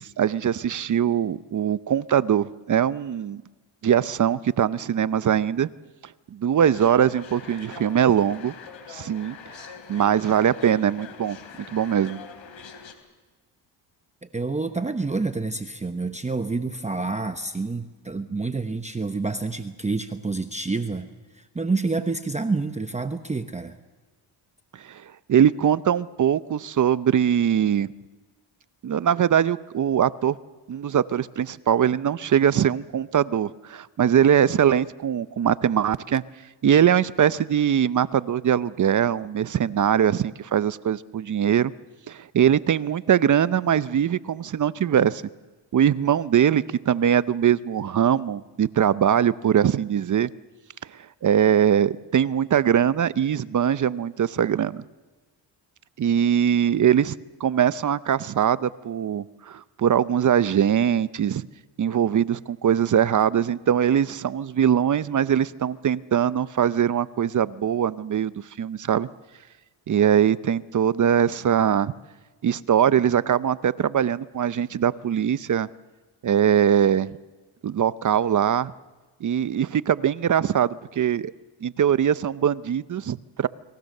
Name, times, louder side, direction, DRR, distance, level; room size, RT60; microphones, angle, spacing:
voice 1, 0.0-3.4 3.8-5.7 6.3-8.5 8.9-9.4 9.7-11.4 11.7-12.2 24.7-25.0 25.3-27.9 28.8-30.4 30.7-36.2 36.6-41.7 42.1-45.2 45.7-50.3 51.2-54.8 56.0-57.1 57.4-61.5 61.8-68.3 68.6-69.1 69.9-71.9 72.4-75.7 76.2-77.1 77.6-78.7 79.2-81.3 81.6-83.5, right 9 dB, 40° right, 16 dB, 0.7 m, -22 dB
sound 1, 6.6-12.9, left 6 dB, 70° left, 3.5 m, -43 dB
voice 2, 14.2-21.1 21.3-23.8, right 3 dB, 15° right, 8 dB, 0.9 m, -28 dB
29.5 x 21.5 x 6.6 m, 1.3 s
cardioid pair, 100°, 47 cm